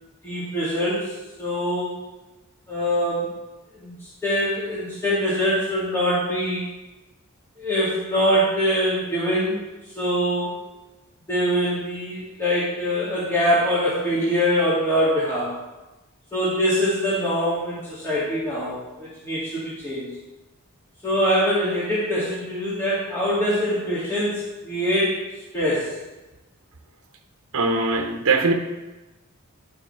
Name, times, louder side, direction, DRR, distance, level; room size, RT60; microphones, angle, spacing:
voice 1, 0.2-1.1 1.4-1.9 2.7-3.4 3.7-3.9 4.2-6.6 7.6-9.6 10.0-10.5 11.3-15.5 16.3-20.1 21.0-25.2 25.5-25.9, equal, 10° left, -11 dB, 2.1 m, -23 dB
voice 2, 27.5-28.5, right 3 dB, 70° right, 4 dB, 0.8 m, -21 dB
11.5 x 6.9 x 3.2 m, 1.1 s
head